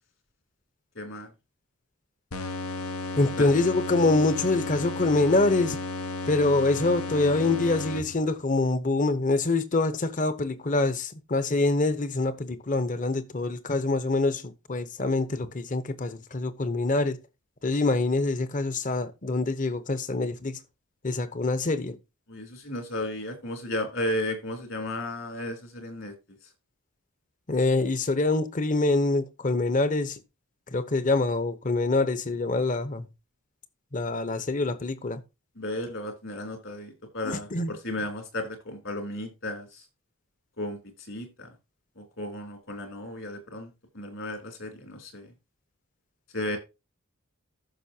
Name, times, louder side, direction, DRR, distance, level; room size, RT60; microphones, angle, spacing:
voice 1, 0.9-1.3 3.4-3.5 22.3-26.1 35.6-39.8 40.6-40.8 41.1-41.5 42.0-43.7 43.9-45.3 46.3-46.6, left 1 dB, 60° left, 3.4 m, -34 dB
sound 1, 2.3-8.4, left 2 dB, 85° left, 1.2 m, -34 dB
voice 2, 3.2-5.8 6.3-17.2 17.6-20.6 21.0-21.9 27.5-30.2 30.7-33.1 33.9-35.2 37.2-37.7, left 2 dB, 35° left, 0.9 m, -25 dB
14.0 x 6.3 x 2.8 m
head